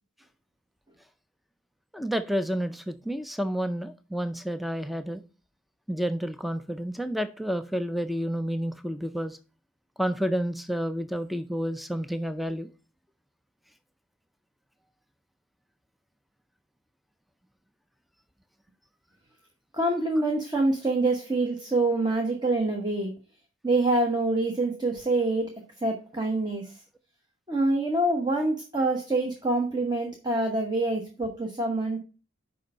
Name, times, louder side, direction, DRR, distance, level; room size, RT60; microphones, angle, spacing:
voice 1, 1.9-5.2 5.9-9.4 10.0-12.7, equal, ahead, 0.3 m, -30 dB
voice 2, 19.7-23.1 23.6-25.5 25.8-26.8 27.5-32.0, right 2 dB, 20° right, 1.0 m, -26 dB
6.5 x 5.3 x 5.3 m
head